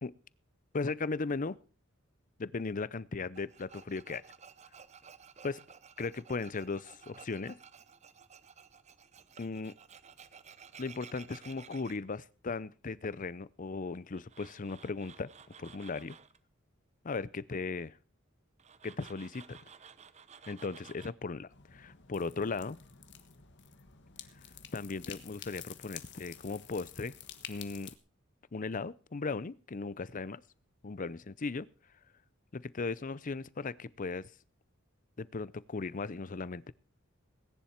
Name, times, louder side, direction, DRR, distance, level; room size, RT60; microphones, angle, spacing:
voice 1, 0.7-1.6 2.4-4.2 5.4-5.6 6.0-7.6 9.4-9.7 10.8-15.3 15.6-16.2 17.0-18.0 18.8-19.6 20.5-22.8 24.7-27.1 27.5-27.9 28.5-30.4 30.8-31.7 32.5-34.3 35.2-36.7, left 4 dB, 40° left, 20 dB, 0.6 m, -37 dB
Tools, 3.3-12.0 14.1-16.4 18.6-21.1, right 6 dB, 35° right, 0.8 m, -54 dB
sound 1, 21.5-28.0, left 9 dB, 60° left, 1.4 m, -50 dB
20.0 x 10.5 x 4.4 m, 0.38 s
head